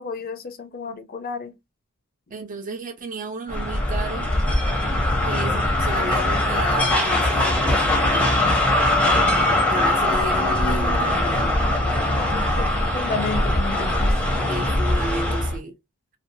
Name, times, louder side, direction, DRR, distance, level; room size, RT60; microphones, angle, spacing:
voice 1, 0.0-1.5 12.5-14.1, left 3 dB, 45° left, 0.5 m, -32 dB
voice 2, 2.3-4.3 5.3-8.4 9.7-11.5 14.4-15.7, right 2 dB, 40° right, 0.5 m, -33 dB
sound 1, 3.5-15.6, left 1 dB, 5° left, 0.7 m, -21 dB
2.5 x 2.2 x 2.6 m
head